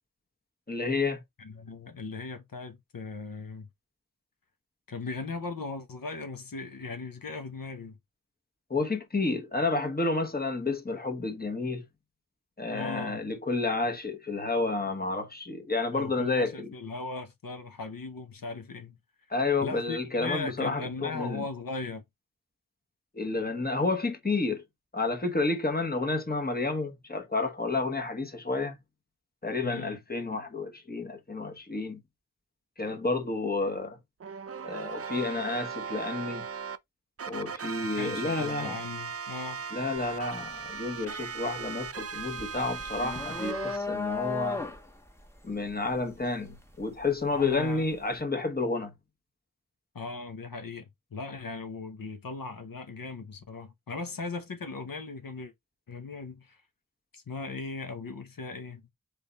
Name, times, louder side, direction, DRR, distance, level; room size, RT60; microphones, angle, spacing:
voice 1, 0.7-1.2 8.7-11.8 12.6-16.7 19.3-21.4 23.2-24.6 24.9-28.8 29.4-32.0 32.8-34.0 34.6-36.5 37.3-38.8 39.7-44.6 45.4-48.9, left 3 dB, 30° left, 1.2 m, -30 dB
voice 2, 1.4-3.7 4.9-8.0 12.7-13.2 15.9-19.0 19.6-22.0 29.6-30.0 37.8-39.6 47.3-47.9 49.9-55.5 55.9-56.6 57.1-58.9, left 3 dB, 85° left, 0.8 m, -38 dB
sound 1, 34.2-36.8 37.2-43.8, right 6 dB, 45° right, 0.5 m, -38 dB
sound 2, 40.0-40.2 40.6-47.6, left 4 dB, 10° left, 1.1 m, -36 dB
3.6 x 3.5 x 3.9 m
wide cardioid pair, 40°, 33 cm